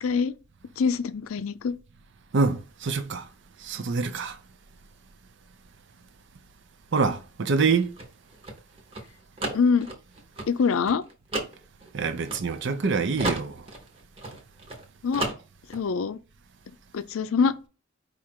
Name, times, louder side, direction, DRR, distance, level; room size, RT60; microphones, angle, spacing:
voice 1, 0.0-0.3 0.8-1.8 9.5-9.9 10.5-11.0 15.0-15.3 15.7-16.2 16.9-17.5, left 5 dB, 85° left, 0.4 m, -24 dB
voice 2, 2.3-3.2 3.6-4.4 6.9-7.9 11.9-13.6, right 4 dB, 60° right, 0.5 m, -25 dB
sound 1, 7.6-12.9 13.2-14.8 15.1-15.8, right 2 dB, 30° right, 1.0 m, -34 dB
4.8 x 2.4 x 4.4 m
head